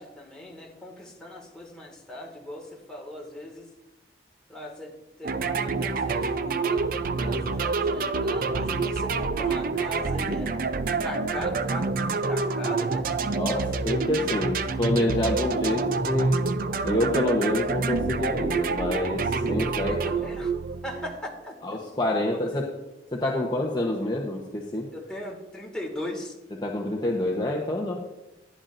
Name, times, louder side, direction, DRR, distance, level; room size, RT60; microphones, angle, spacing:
voice 1, 0.0-3.7 4.5-4.9 5.2-10.6 11.0-13.1 13.5-14.0 19.9-20.5 20.8-21.8 22.3-22.7 24.9-26.4, left 1 dB, 5° left, -2 dB, 2.1 m, -39 dB
sound 1, 5.2-21.2, right 4 dB, 50° right, 0.5 m, -27 dB
voice 2, 13.3-16.4 16.8-19.9 21.6-22.7 23.1-24.9 26.6-28.0, left 1 dB, 25° left, -2 dB, 1.0 m, -27 dB
14.5 x 10.5 x 2.6 m, 1.0 s
head